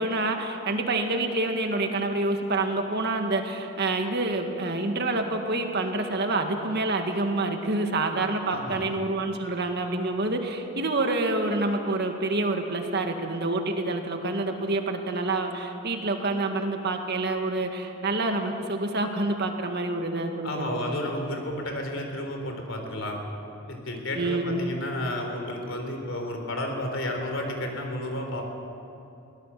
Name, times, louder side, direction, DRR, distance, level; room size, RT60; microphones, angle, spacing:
voice 1, 0.0-20.8 24.1-24.6, right 2 dB, 50° right, 4 dB, 2.0 m, -27 dB
voice 2, 8.5-8.8 20.4-23.2 23.7-28.4, left 1 dB, 65° left, 3 dB, 3.8 m, -32 dB
22.5 x 17.5 x 7.7 m, 2.8 s
head